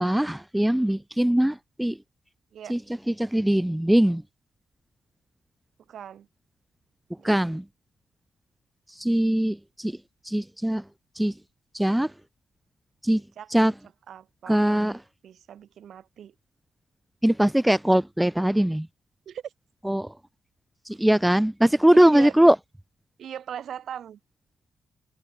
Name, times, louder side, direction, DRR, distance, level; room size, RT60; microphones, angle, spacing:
voice 1, 0.0-2.0 2.7-2.8 3.1-4.2 7.2-7.6 9.0-10.0 10.2-10.8 11.2-11.3 11.7-12.1 13.0-13.2 13.5-13.7 14.5-15.0 17.2-18.9 19.9-20.1 20.9-22.6, right 1 dB, 5° right, 1.0 m, -21 dB
voice 2, 5.9-6.3 7.2-7.4 13.1-13.7 14.1-14.9 15.2-16.3 19.3-19.5 21.9-22.4 23.2-24.2, right 9 dB, 55° right, 4.6 m, -40 dB
cardioid pair, 175°, 0 cm